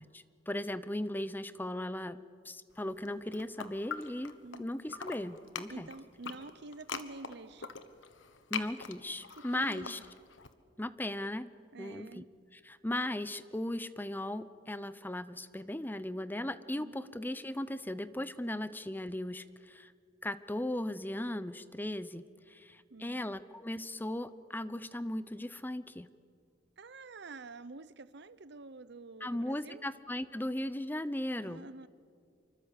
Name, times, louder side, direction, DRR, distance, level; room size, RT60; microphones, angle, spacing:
voice 1, 0.0-2.2 2.4-5.9 8.5-10.0 10.8-11.5 11.8-12.2 12.6-19.9 20.2-26.1 29.2-31.7, left 1 dB, 10° left, 14 dB, 0.7 m, -37 dB
sound 1, 2.9-4.6 4.9-10.5, left 6 dB, 85° left, 1.4 m, -43 dB
voice 2, 4.4-4.7 5.7-7.7 9.4-10.0 11.7-12.3 16.7-17.0 18.4-18.6 22.9-23.3 26.8-29.8 31.3-31.9, right 3 dB, 65° right, 16 dB, 0.8 m, -48 dB
26.5 x 24.5 x 8.2 m, 2.2 s
head